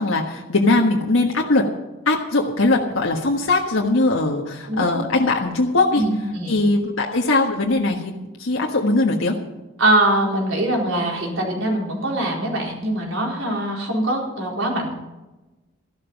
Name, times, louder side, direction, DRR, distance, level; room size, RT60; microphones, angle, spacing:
voice 1, 0.0-1.7 2.0-6.0 6.5-9.3, left 2 dB, 90° left, -1 dB, 1.5 m, -20 dB
voice 2, 6.0-6.6 9.8-14.9, right 1 dB, 90° right, -1 dB, 4.3 m, -22 dB
13.5 x 12.0 x 5.4 m, 1.1 s
head